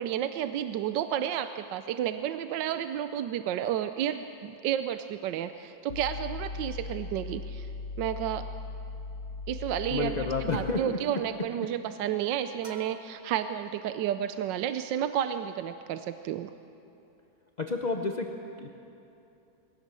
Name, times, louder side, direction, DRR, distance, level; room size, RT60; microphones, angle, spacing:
voice 1, 0.0-7.7 8.0-8.5 9.5-16.5, right 10 dB, 75° right, 10 dB, 1.2 m, -31 dB
sound 1, 5.9-10.7, left 4 dB, 70° left, 1.6 m, -38 dB
voice 2, 9.9-11.0 17.6-18.7, left 3 dB, 45° left, 3 dB, 0.5 m, -30 dB
sound 2, 12.6-14.4, right 5 dB, 35° right, 1.7 m, -50 dB
21.5 x 16.5 x 7.5 m, 2.8 s
omnidirectional pair, 2.1 m